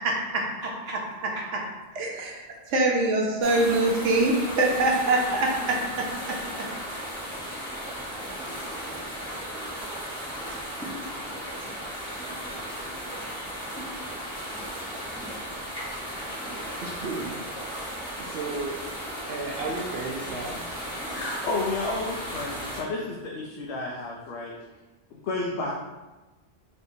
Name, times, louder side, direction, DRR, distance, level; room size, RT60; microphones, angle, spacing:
voice 1, 0.0-1.4 16.8-17.4 18.2-18.8 19.3-20.7, right 3 dB, 65° right, -2 dB, 0.7 m, -35 dB
voice 2, 1.9-2.4 2.7-5.5, right 2 dB, 80° right, -1 dB, 1.1 m, -23 dB
sound 1, 3.4-22.8, equal, 5° left, 0.9 m, -35 dB
voice 3, 21.1-24.6 25.1-25.7, left 2 dB, 70° left, -2 dB, 0.9 m, -31 dB
4.4 x 3.3 x 2.7 m, 1.1 s
omnidirectional pair, 1.2 m